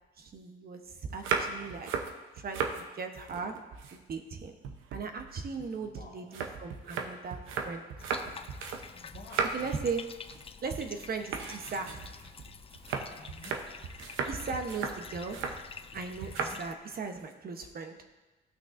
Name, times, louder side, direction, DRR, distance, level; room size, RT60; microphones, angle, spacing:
voice 1, 0.2-1.9 2.3-3.5 3.9-4.6 4.9-7.8 9.5-10.0 10.6-12.1 14.2-15.5 15.9-18.1, right 4 dB, 50° right, 5 dB, 1.0 m, -38 dB
sound 1, 1.1-2.8 3.2-4.4 4.6-8.9 9.1-9.8 10.2-10.5 10.7-10.9 11.3-15.6 16.2-16.6 16.9-17.3, right 5 dB, 85° right, 0.8 m, -36 dB
voice 2, 5.8-6.3 8.9-9.8 13.2-13.6 16.2-16.6, left 4 dB, 60° left, 2 dB, 1.4 m, -51 dB
Bathtub (filling or washing), 8.0-16.7, left 6 dB, 30° left, 0.4 m, -48 dB
15.0 x 6.0 x 2.6 m, 1.2 s
cardioid pair, 90°, 20 cm